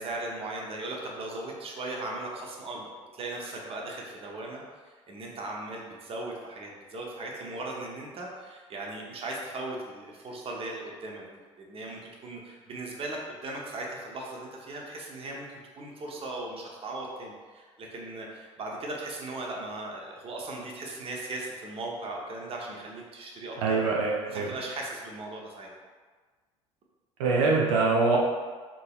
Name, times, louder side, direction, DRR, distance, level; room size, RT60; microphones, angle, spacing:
voice 1, 0.0-11.2 11.6-23.8 24.2-25.7, right 2 dB, 35° right, -1 dB, 0.7 m, -38 dB
voice 2, 23.6-24.5 27.2-28.2, right 3 dB, 75° right, -3 dB, 0.6 m, -24 dB
3.7 x 2.8 x 2.3 m, 1.4 s
hypercardioid pair, 70°, 17 cm